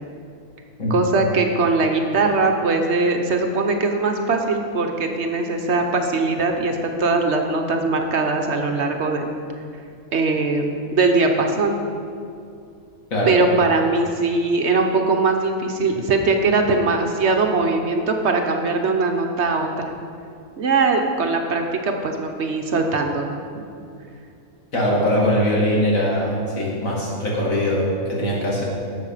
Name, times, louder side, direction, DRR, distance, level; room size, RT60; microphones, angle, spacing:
voice 1, 0.9-9.3 10.1-11.7 13.3-19.7 20.6-23.3, right 3 dB, 55° right, 4 dB, 1.1 m, -21 dB
voice 2, 24.7-28.6, equal, 75° left, -4 dB, 2.8 m, -21 dB
12.0 x 7.4 x 5.6 m, 2.4 s
omnidirectional pair, 1.4 m